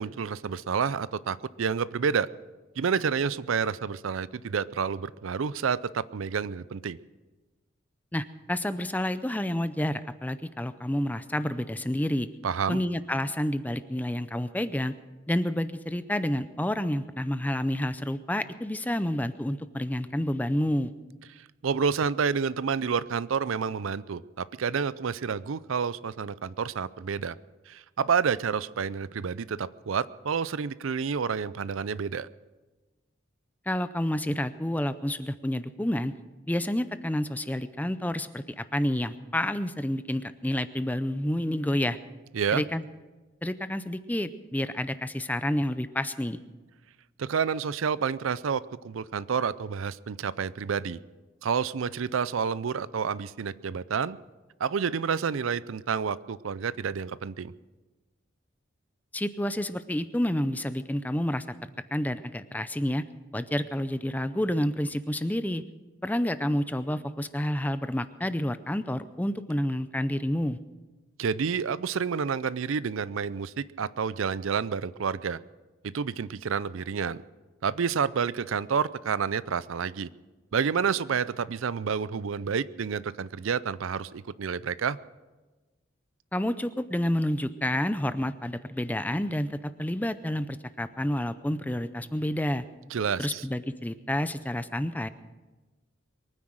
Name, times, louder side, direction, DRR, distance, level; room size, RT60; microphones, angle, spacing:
voice 1, 0.0-2.3 2.8-7.0 12.4-12.8 21.6-27.4 27.7-32.3 42.3-42.6 47.2-51.0 51.4-54.2 54.6-57.5 71.2-75.4 75.8-77.2 77.6-80.1 80.5-85.0 92.9-93.4, right 6 dB, 80° right, 18 dB, 0.5 m, -29 dB
voice 2, 8.1-12.3 12.7-14.9 15.3-20.9 33.7-36.1 36.5-42.0 42.5-42.8 43.4-46.4 59.1-61.4 61.9-63.0 63.3-65.6 66.0-70.6 86.3-92.6 93.2-95.1, left 1 dB, 10° left, 13 dB, 0.5 m, -29 dB
22.5 x 9.7 x 6.4 m, 1.2 s
head